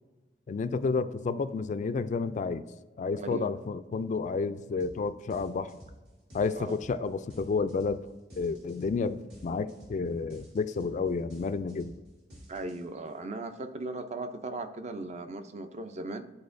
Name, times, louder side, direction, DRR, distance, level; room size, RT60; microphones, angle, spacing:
voice 1, 0.5-2.7 3.0-5.8 6.3-8.1 8.4-11.9, left 4 dB, 45° left, 12 dB, 0.3 m, -31 dB
voice 2, 3.2-3.5 6.6-6.8 12.5-16.2, right 2 dB, 40° right, 9 dB, 0.5 m, -38 dB
sound 1, 4.8-5.0 5.3-13.1, equal, 70° right, 2.1 m, -51 dB
10.5 x 4.3 x 2.6 m, 1.2 s
head